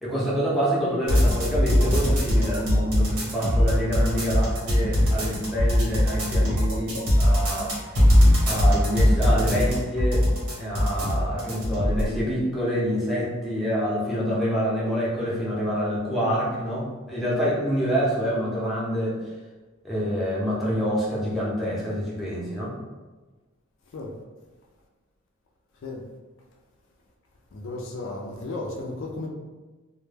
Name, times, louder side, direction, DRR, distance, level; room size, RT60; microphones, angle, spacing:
voice 1, 0.0-8.0 8.5-10.3 10.5-19.2 19.8-22.8, equal, ahead, -8 dB, 0.5 m, -27 dB
sound 1, 1.1-12.1, equal, 85° right, 1.0 m, -20 dB
voice 2, 27.5-29.3, left 2 dB, 60° left, -1 dB, 0.4 m, -35 dB
2.1 x 2.1 x 3.2 m, 1.2 s
head